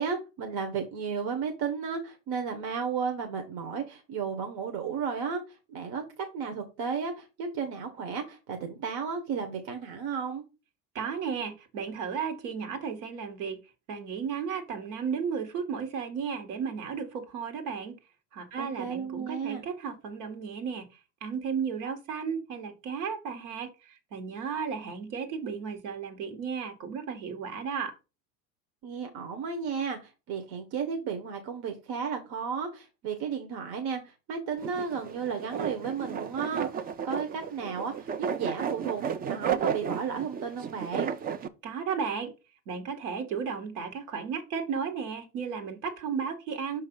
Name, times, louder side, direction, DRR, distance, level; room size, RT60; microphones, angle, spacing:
voice 1, 0.0-5.4 5.7-6.0 6.3-10.4 18.6-19.6 28.8-39.0 39.3-41.1, right 6 dB, 50° right, 5 dB, 1.4 m, -33 dB
voice 2, 11.0-13.6 13.9-18.0 18.3-20.9 21.2-27.9 41.6-42.3 42.7-46.8, right 6 dB, 65° right, 5 dB, 1.9 m, -34 dB
sound 1, 34.6-41.5, right 7 dB, 20° right, 0.3 m, -33 dB
5.7 x 3.2 x 5.4 m, 0.29 s
hypercardioid pair, 90°, 50 cm